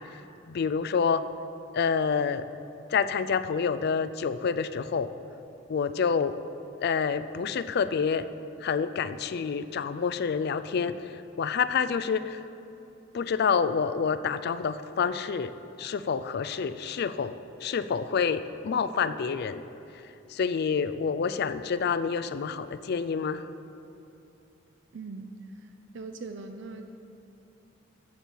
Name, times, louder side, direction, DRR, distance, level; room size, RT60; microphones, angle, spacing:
voice 1, 0.5-1.2 1.7-2.5 2.9-5.1 5.7-6.3 6.8-8.3 8.6-12.4 13.1-15.5 15.8-17.3 17.6-19.6 20.3-23.4, left 6 dB, 55° left, 13 dB, 0.4 m, -28 dB
voice 2, 24.9-25.3 25.6-25.7 25.9-26.8, right 4 dB, 65° right, 5 dB, 0.5 m, -40 dB
13.5 x 4.6 x 7.4 m, 2.7 s
head